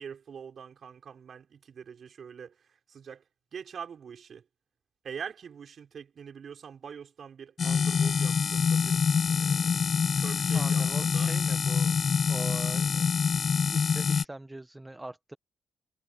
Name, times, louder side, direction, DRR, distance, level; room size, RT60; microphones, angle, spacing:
voice 1, 0.0-3.2 3.5-4.5 5.0-9.8 10.2-11.3, right 7 dB, 50° right, 5.6 m, -44 dB
sound 1, 7.6-14.2, left 6 dB, 45° left, 0.4 m, -26 dB
voice 2, 10.5-11.9 12.3-13.1 13.7-15.4, right 1 dB, 10° right, 1.3 m, -42 dB
cardioid pair, 90°, 0 cm